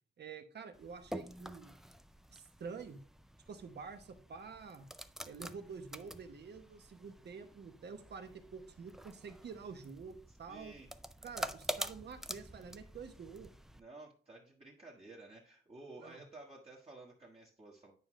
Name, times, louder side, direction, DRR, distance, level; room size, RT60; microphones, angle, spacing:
voice 1, 0.2-1.7 2.3-3.0 3.5-4.9 5.2-10.7 11.2-13.5 16.0-16.2, right 5 dB, 60° right, 7 dB, 1.0 m, -48 dB
sound 1, 0.7-13.8, right 1 dB, ahead, 0.3 m, -47 dB
voice 2, 10.5-10.9 13.7-17.9, right 2 dB, 30° right, -4 dB, 1.3 m, -53 dB
9.5 x 5.1 x 3.1 m, 0.42 s
wide cardioid pair, 140°, 19 cm